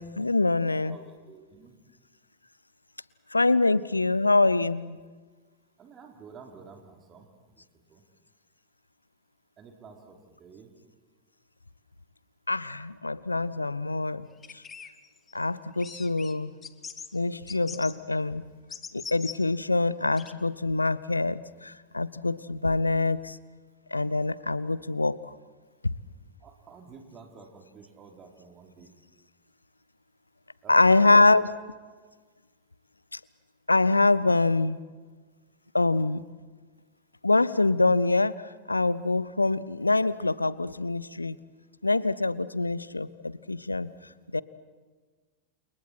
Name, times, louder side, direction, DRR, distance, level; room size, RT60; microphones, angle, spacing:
voice 1, 0.2-1.0 3.3-5.0 12.5-14.3 15.3-16.5 17.1-18.4 18.9-23.4 23.9-25.2 30.7-31.5 33.1-33.2 33.7-34.8 35.7-36.2 37.2-38.3 38.7-41.4 41.8-43.9 44.3-44.4, left 3 dB, 80° left, 20 dB, 0.6 m, -24 dB
voice 2, 0.9-1.7 5.8-7.3 7.6-7.7 7.9-8.0 9.6-10.7 26.4-28.9 30.6-31.2 31.8-32.0, right 5 dB, 25° right, 2 dB, 3.6 m, -50 dB
sound 1, 14.4-15.3 15.8-16.3 16.6-17.1 17.5-18.0 18.7-19.4 20.2-20.3, left 6 dB, 20° left, 1.2 m, -41 dB
30.0 x 28.5 x 4.5 m, 1.4 s
figure-of-eight pair, 90°, 0 cm